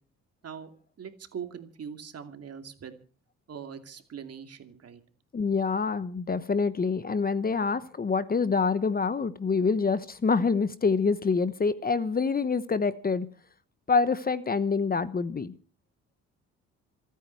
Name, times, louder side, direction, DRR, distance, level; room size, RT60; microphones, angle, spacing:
voice 1, 1.0-3.0 3.5-5.0, right 7 dB, 55° right, 2.6 m, -41 dB
voice 2, 5.3-13.3 13.9-15.5, left 4 dB, 30° left, 1.0 m, -26 dB
27.0 x 9.4 x 4.7 m
cardioid pair, 90°, 30 cm